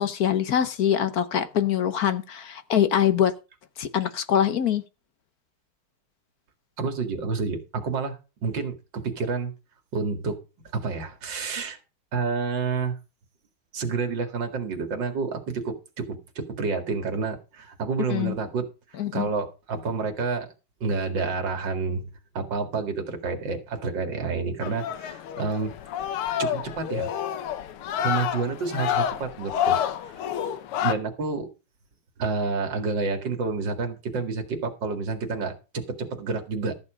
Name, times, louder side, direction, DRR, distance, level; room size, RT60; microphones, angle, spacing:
voice 1, 0.0-3.3 3.8-4.8 18.1-18.3 19.0-19.3, left 9 dB, 55° left, 1.1 m, -24 dB
voice 2, 6.8-9.5 9.9-10.4 10.7-11.8 12.1-13.0 13.7-18.7 19.1-20.5 20.8-22.1 22.3-25.7 26.4-27.1 28.0-30.1 30.8-31.5 32.2-36.7, right 4 dB, 60° right, 2.7 m, -29 dB
sound 1, 24.6-30.9, left 10 dB, 85° left, 1.9 m, -29 dB
14.0 x 7.1 x 5.2 m
omnidirectional pair, 2.3 m